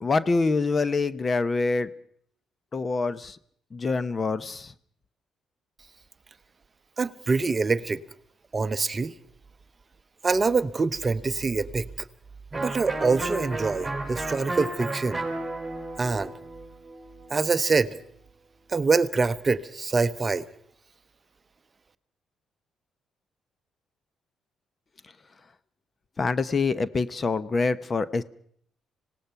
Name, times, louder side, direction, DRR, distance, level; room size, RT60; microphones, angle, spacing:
voice 1, 0.0-1.9 2.7-3.4 3.7-4.7 26.2-28.2, left 3 dB, 35° left, 0.8 m, -25 dB
voice 2, 7.0-8.0 8.5-9.1 10.2-12.1 12.5-15.2 16.0-16.3 17.3-18.0 18.7-20.5, right 4 dB, 30° right, 0.8 m, -25 dB
Electric guitar, 12.5-18.1, right 2 dB, 10° right, 4.9 m, -34 dB
26.0 x 18.0 x 5.8 m
cardioid pair, 90°, 0 cm